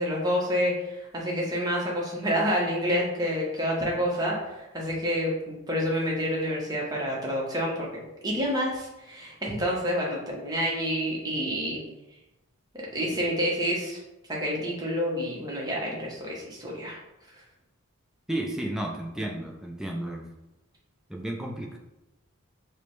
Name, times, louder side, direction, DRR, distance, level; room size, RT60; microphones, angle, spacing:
voice 1, 0.0-11.8 12.8-14.0 14.3-17.0, equal, 20° right, -3 dB, 0.8 m, -28 dB
voice 2, 18.3-20.3 21.1-21.8, right 1 dB, ahead, -1 dB, 0.4 m, -32 dB
4.9 x 2.1 x 3.0 m, 0.95 s
head